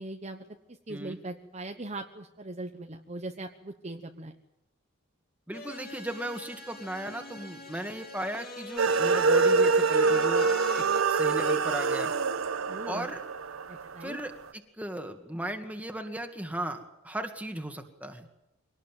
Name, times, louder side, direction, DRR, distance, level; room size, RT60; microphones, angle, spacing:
voice 1, 0.0-4.4 12.7-13.1 13.7-14.2, right 2 dB, 30° right, 4 dB, 1.1 m, -40 dB
sound 1, 5.5-11.0, left 3 dB, 45° left, 3.3 m, -45 dB
voice 2, 5.5-10.5 10.8-12.1 12.9-13.2 14.0-14.3 14.8-18.3, right 1 dB, 5° right, 5 dB, 2.0 m, -36 dB
sound 2, 8.8-14.2, right 4 dB, 85° right, 1.1 m, -25 dB
24.0 x 18.5 x 9.1 m, 0.89 s
head